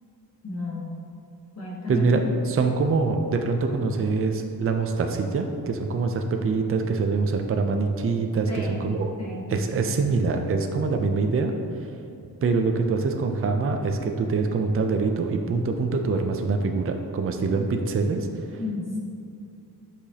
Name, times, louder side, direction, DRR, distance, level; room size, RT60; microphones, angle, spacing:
voice 1, 0.4-0.9 1.5-2.2 8.5-8.8 9.2-9.5 9.8-9.9 18.6-19.0, left 3 dB, 40° left, -6 dB, 1.1 m, -33 dB
voice 2, 1.9-2.2 2.5-9.1 9.5-11.5 12.4-18.6, right 4 dB, 35° right, 5 dB, 0.4 m, -24 dB
8.8 x 5.0 x 2.8 m, 2.5 s
wide cardioid pair, 140°, 40 cm